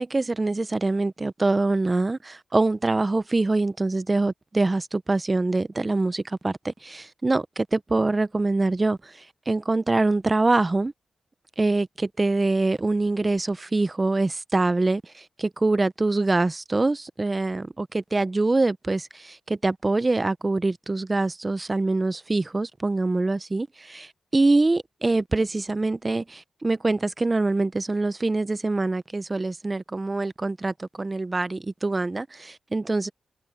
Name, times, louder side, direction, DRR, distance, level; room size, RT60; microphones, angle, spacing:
voice 1, 0.0-10.9 11.6-33.1, right 2 dB, 35° right, 1.0 m, -24 dB
supercardioid pair, 45°, 0 cm